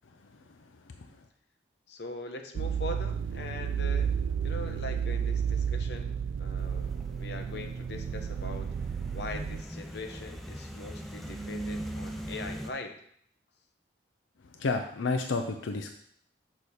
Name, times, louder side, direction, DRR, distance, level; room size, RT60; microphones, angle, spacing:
voice 1, 0.3-1.2 14.5-15.9, left 3 dB, 85° left, 5 dB, 0.5 m, -32 dB
voice 2, 1.9-4.1 4.4-8.7 9.1-12.9, left 2 dB, 60° left, 4 dB, 0.8 m, -41 dB
sound 1, 2.5-9.6, right 7 dB, 80° right, 0.3 m, -32 dB
sound 2, 6.6-12.7, right 1 dB, ahead, 0.5 m, -41 dB
6.5 x 4.9 x 4.2 m, 0.65 s
head